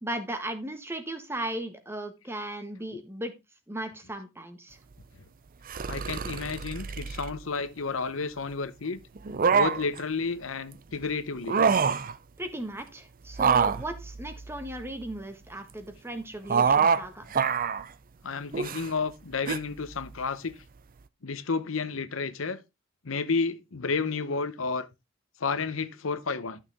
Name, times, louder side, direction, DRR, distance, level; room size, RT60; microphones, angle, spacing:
voice 1, 0.0-3.3 3.7-4.8 12.4-17.2, right 1 dB, 10° right, 1.5 m, -36 dB
sound 1, 5.7-7.3 9.2-10.0 11.3-12.1 13.3-15.1 16.5-17.0 17.3-17.8 18.5-18.9 19.5-19.6, right 6 dB, 45° right, 0.6 m, -25 dB
voice 2, 5.8-9.0 9.5-11.6 18.2-20.5 21.2-22.6 23.0-24.9 25.4-26.6, left 4 dB, 80° left, 0.9 m, -31 dB
12.0 x 6.6 x 3.6 m
head